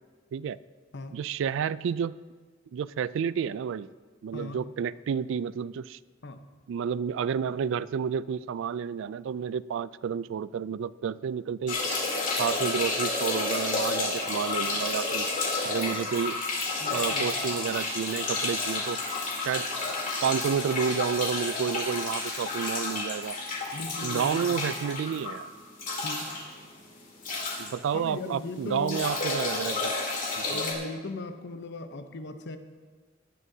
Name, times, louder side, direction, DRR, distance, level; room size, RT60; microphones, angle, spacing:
voice 1, 1.1-2.2 2.7-3.9 4.2-6.0 6.7-11.8 12.4-15.3 15.6-16.4 16.9-19.0 19.4-19.7 20.2-23.4 24.0-25.5 27.6-29.9 30.4-30.6, right 7 dB, 65° right, 18 dB, 0.3 m, -30 dB
sound 1, 11.7-28.4 28.7-30.7, left 3 dB, 45° left, 2.5 m, -31 dB
voice 2, 16.8-17.3 23.7-24.7 26.0-26.3 27.9-29.0 30.5-32.6, left 2 dB, 60° left, 8 dB, 0.8 m, -38 dB
18.5 x 11.0 x 2.8 m, 1.4 s
head